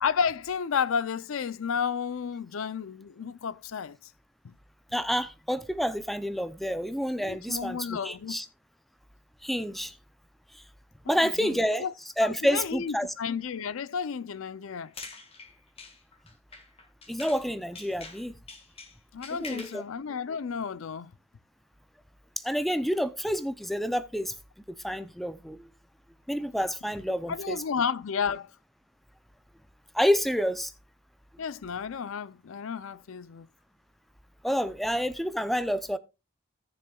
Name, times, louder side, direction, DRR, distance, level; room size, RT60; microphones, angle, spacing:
voice 1, 0.0-4.0 4.4-4.5 7.2-8.4 11.0-11.9 12.2-14.9 19.1-21.1 27.1-28.5 31.4-33.5, left 6 dB, 70° left, 0.5 m, -32 dB
voice 2, 4.9-8.5 9.4-10.0 10.5-10.6 11.1-11.8 12.2-13.1 17.1-18.4 19.3-19.8 22.4-24.4 24.7-25.7 26.3-27.6 29.9-30.7 34.4-36.0, equal, ahead, 0.4 m, -28 dB
sound 1, 14.7-17.5 17.7-19.8, left 4 dB, 25° left, 1.6 m, -45 dB
17.0 x 6.8 x 2.3 m
head